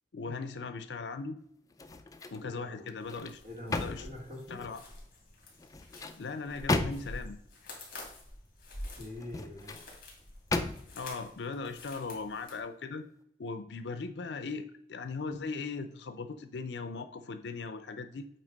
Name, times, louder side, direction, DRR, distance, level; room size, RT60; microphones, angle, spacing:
voice 1, 0.1-1.4 2.3-3.4 3.7-4.1 4.5-4.8 6.2-7.4 10.9-13.1 13.4-18.3, left 4 dB, 75° left, 10 dB, 0.5 m, -38 dB
sound 1, 1.7-2.5 2.9-4.8 5.6-7.3 9.1-9.8 10.5-11.1 11.6-11.8, left 2 dB, 20° left, 0.3 m, -35 dB
voice 2, 2.4-2.9 3.4-4.6 9.0-9.9, left 1 dB, 45° right, 0 dB, 1.7 m, -44 dB
sound 2, 3.0-12.6, left 1 dB, 50° left, 2.4 m, -48 dB
8.4 x 2.9 x 5.2 m, 0.72 s
head